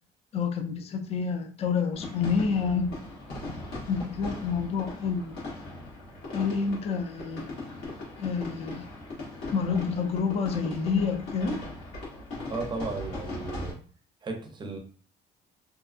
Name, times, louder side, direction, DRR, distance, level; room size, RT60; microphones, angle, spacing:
voice 1, 0.3-3.0 3.9-5.3 6.3-7.5 8.2-8.9 9.5-11.7, left 5 dB, 40° left, 5 dB, 0.4 m, -28 dB
sound 1, 1.9-13.7, left 2 dB, 75° left, 1.3 m, -39 dB
voice 2, 12.5-13.8 14.2-14.8, right 3 dB, 25° right, 3 dB, 0.6 m, -35 dB
2.7 x 2.2 x 2.4 m, 0.41 s
cardioid pair, 110°, 17 cm